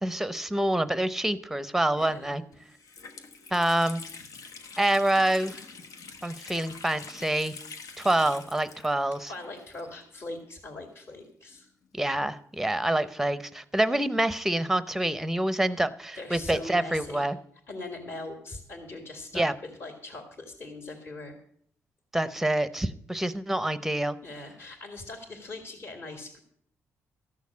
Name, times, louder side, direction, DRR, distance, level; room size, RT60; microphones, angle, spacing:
voice 1, 0.0-2.4 3.5-4.0 4.8-5.6 6.2-7.6 8.0-9.3 11.9-17.4 19.3-19.5 22.1-24.2, right 1 dB, 5° right, 14 dB, 0.7 m, -26 dB
Water tap faucet, 2.0-2.1 2.5-10.3 10.5-10.6 11.4-13.0, left 5 dB, 90° left, 1.3 m, -46 dB
voice 2, 2.0-2.4 9.3-11.7 16.2-17.3 17.7-19.4 19.8-21.4 24.2-26.4, left 2 dB, 45° left, 4 dB, 2.2 m, -41 dB
14.0 x 6.5 x 8.3 m, 0.65 s
cardioid pair, 135°, 6 cm